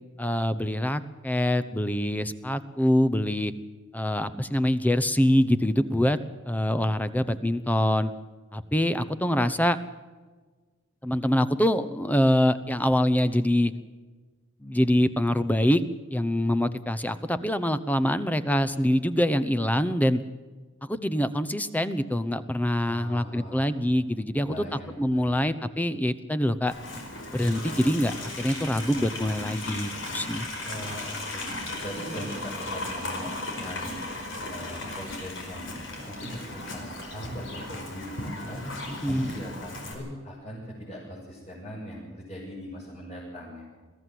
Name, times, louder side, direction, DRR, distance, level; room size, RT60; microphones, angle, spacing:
voice 1, 0.2-3.5 3.9-6.2 6.5-8.1 8.5-9.8 11.0-13.7 14.6-15.8 16.1-20.2 20.8-26.7 27.3-30.5 39.0-39.4, equal, 10° left, 13 dB, 0.8 m, -25 dB
voice 2, 22.9-23.8 24.4-25.5 30.6-31.4 31.8-33.9 34.5-38.6 39.1-43.6, equal, 35° left, -6 dB, 7.1 m, -40 dB
Livestock farm animals working animals, 26.7-39.9, left 2 dB, 70° left, 5.1 m, -36 dB
22.5 x 15.5 x 7.7 m, 1.4 s
head